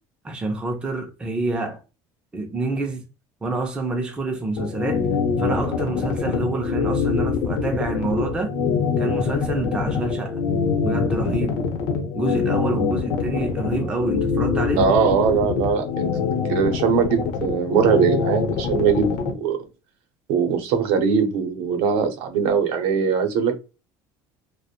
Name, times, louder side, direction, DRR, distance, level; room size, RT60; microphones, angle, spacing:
voice 1, 0.2-1.8 2.3-3.0 3.4-5.0 5.4-8.5 9.0-10.4 10.8-11.6 12.1-14.9, right 2 dB, 10° right, 0.3 m, -27 dB
sound 1, 4.6-19.3, left 6 dB, 65° left, 0.7 m, -24 dB
voice 2, 14.8-16.1 16.5-19.6 20.3-23.6, right 6 dB, 70° right, 0.6 m, -21 dB
2.4 x 2.0 x 2.7 m
cardioid pair, 170°, 10 cm